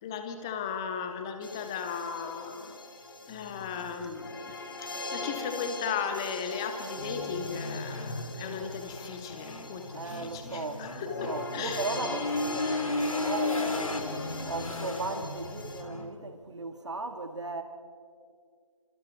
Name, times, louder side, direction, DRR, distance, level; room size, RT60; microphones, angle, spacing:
voice 1, 0.0-2.7 3.3-4.5 4.8-11.8, left 6 dB, 10° left, 7 dB, 0.7 m, -36 dB
sound 1, 1.4-15.8, left 2 dB, 40° left, 2.7 m, -41 dB
sound 2, 7.0-16.1, left 2 dB, 70° left, 3.2 m, -35 dB
voice 2, 9.9-14.0 14.5-17.6, right 3 dB, 55° right, 6 dB, 2.6 m, -37 dB
29.5 x 26.0 x 4.6 m, 2.2 s
figure-of-eight pair, 160°, 18 cm